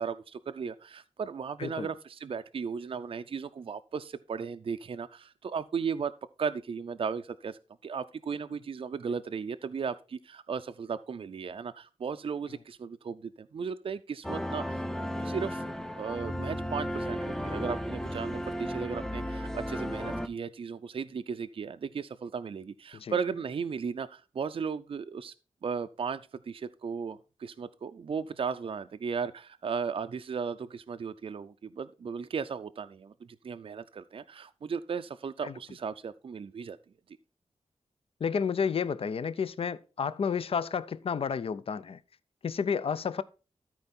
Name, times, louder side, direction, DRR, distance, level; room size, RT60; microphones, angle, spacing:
voice 1, 0.0-6.1 6.4-25.3 25.6-36.8 37.1-37.2, right 6 dB, 55° right, 0.4 m, -36 dB
sound 1, 14.2-20.3, equal, 5° left, 0.5 m, -34 dB
voice 2, 38.2-42.0 42.4-43.2, left 6 dB, 55° left, 0.5 m, -31 dB
13.0 x 4.5 x 4.2 m
wide cardioid pair, 85°, 11 cm